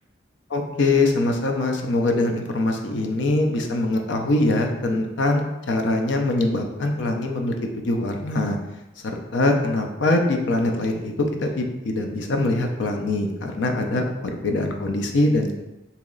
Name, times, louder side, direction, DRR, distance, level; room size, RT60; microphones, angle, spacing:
voice 1, 0.5-8.6 9.0-14.0 14.3-15.5, left 2 dB, 85° left, 3 dB, 0.5 m, -23 dB
3.0 x 2.9 x 3.7 m, 0.99 s
head